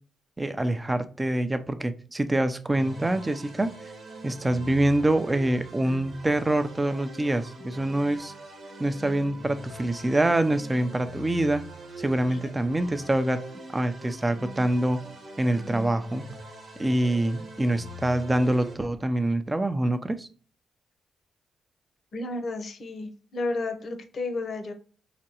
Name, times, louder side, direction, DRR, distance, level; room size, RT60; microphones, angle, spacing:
voice 1, 0.4-3.7 4.2-8.3 8.8-11.6 12.0-13.4 13.7-15.0 15.4-16.3 16.8-20.3, right 1 dB, 20° right, 10 dB, 0.5 m, -25 dB
sound 1, 2.7-18.8, right 1 dB, 65° right, 0.9 m, -43 dB
voice 2, 22.1-24.7, left 2 dB, 60° left, 5 dB, 0.8 m, -32 dB
4.9 x 2.3 x 2.9 m, 0.41 s
cardioid pair, 65°, 0 cm